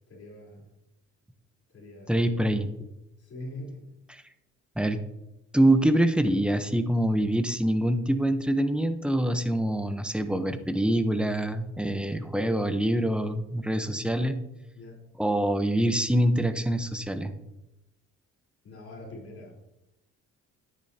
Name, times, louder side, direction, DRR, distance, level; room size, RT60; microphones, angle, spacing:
voice 1, 0.1-0.7 1.7-2.3 3.2-3.8 14.7-15.0 18.6-19.6, left 1 dB, 50° left, -2 dB, 4.0 m, -43 dB
voice 2, 2.1-2.7 4.1-4.2 4.8-5.0 5.5-14.4 15.2-17.3, right 1 dB, 5° right, 8 dB, 0.9 m, -25 dB
12.0 x 10.0 x 2.9 m, 0.92 s
cardioid pair, 90°, 30 cm